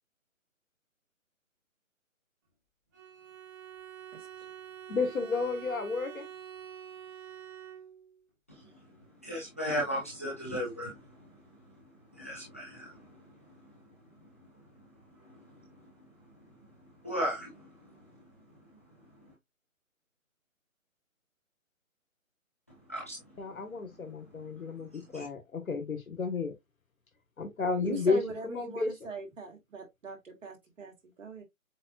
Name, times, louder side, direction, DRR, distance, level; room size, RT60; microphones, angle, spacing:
Bowed string instrument, 2.9-8.2, right 9 dB, 15° right, 0.9 m, -46 dB
voice 1, 4.9-6.3 23.4-26.5 27.4-28.9, left 4 dB, 80° left, 1.6 m, -32 dB
voice 2, 8.5-8.9 9.2-11.4 11.6-11.8 12.1-13.9 14.2-14.5 14.8-14.9 15.2-16.1 16.4-16.7 17.0-18.2 19.2-19.3 22.9-23.4 24.6-24.7 25.1-25.2, equal, 10° left, 0.6 m, -38 dB
voice 3, 27.8-31.4, right 3 dB, 65° right, 2.1 m, -40 dB
7.4 x 2.5 x 2.4 m
hypercardioid pair, 155°, 41 cm